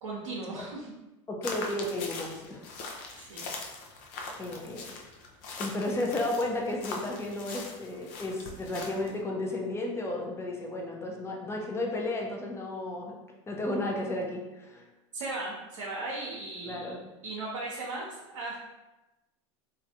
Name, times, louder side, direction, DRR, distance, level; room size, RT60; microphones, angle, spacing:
voice 1, 0.0-0.9 3.1-3.5 15.1-16.9 17.2-18.6, right 2 dB, 90° right, -4 dB, 0.7 m, -37 dB
voice 2, 1.3-2.6 4.4-4.8 5.6-13.1 13.5-14.8 16.6-17.0, left 2 dB, 15° left, 0 dB, 0.7 m, -33 dB
sound 1, 1.4-9.2, left 3 dB, 55° left, 0.6 m, -41 dB
3.2 x 2.5 x 2.7 m, 1.0 s
hypercardioid pair, 100°, 16 cm